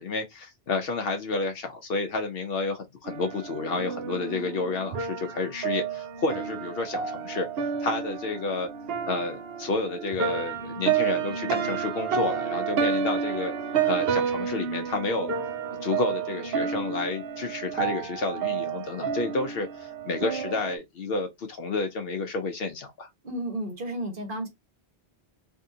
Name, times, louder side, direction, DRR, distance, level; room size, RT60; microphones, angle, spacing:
voice 1, 0.0-7.5 7.8-8.7 9.0-13.5 13.8-15.4 15.8-23.1, left 3 dB, 70° left, 0.8 m, -30 dB
sound 1, 3.1-20.8, right 7 dB, 70° right, 0.8 m, -30 dB
voice 2, 23.2-24.5, right 1 dB, 55° right, 1.2 m, -32 dB
3.5 x 2.8 x 2.7 m
omnidirectional pair, 1.1 m